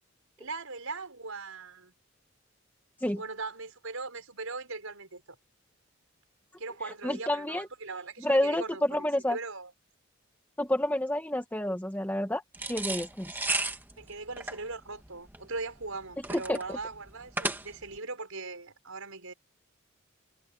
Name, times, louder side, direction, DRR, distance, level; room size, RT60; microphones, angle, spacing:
voice 1, 0.4-1.9 3.2-5.2 6.6-9.7 14.0-19.3, right 3 dB, 80° right, 5.8 m, -40 dB
voice 2, 7.0-7.7 8.2-8.6 8.9-9.4 10.6-12.4 12.7-13.3 16.5-16.8, left 1 dB, 10° left, 1.0 m, -29 dB
sound 1, 12.5-18.0, right 2 dB, 10° right, 1.4 m, -34 dB
head